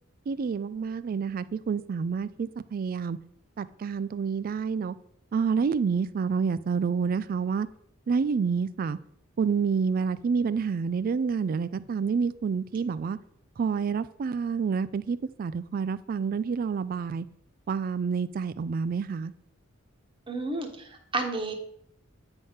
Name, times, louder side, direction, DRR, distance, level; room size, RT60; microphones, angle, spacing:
voice 1, 0.3-3.2 3.6-5.0 5.3-7.7 8.1-9.0 9.4-13.2 13.6-17.3 17.7-19.3, right 5 dB, 45° right, 0.3 m, -28 dB
voice 2, 20.3-21.5, right 3 dB, 25° right, 1.1 m, -31 dB
9.1 x 3.6 x 5.5 m
head